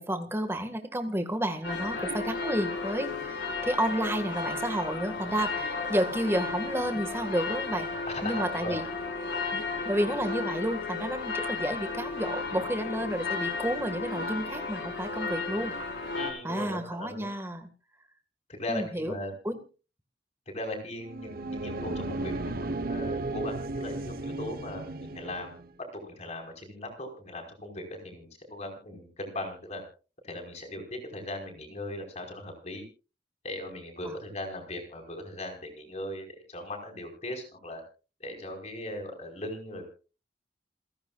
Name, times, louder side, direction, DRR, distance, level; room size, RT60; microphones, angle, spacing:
voice 1, 0.0-7.9 8.2-8.9 9.5-15.7 16.4-17.7 18.7-19.1 19.4-19.6 34.0-34.2, right 1 dB, 15° right, 7 dB, 1.9 m, -31 dB
sound 1, 1.6-16.3, left 4 dB, 80° left, 5.0 m, -34 dB
voice 2, 8.1-8.8 16.1-17.3 18.5-19.3 20.5-24.9 25.1-25.6 25.9-29.8 30.2-32.8 33.4-37.8 38.2-39.9, left 1 dB, 40° left, 3 dB, 5.1 m, -38 dB
sound 2, 21.0-25.7, right 2 dB, 55° right, 1.1 m, -34 dB
28.5 x 10.5 x 2.5 m, 0.35 s
head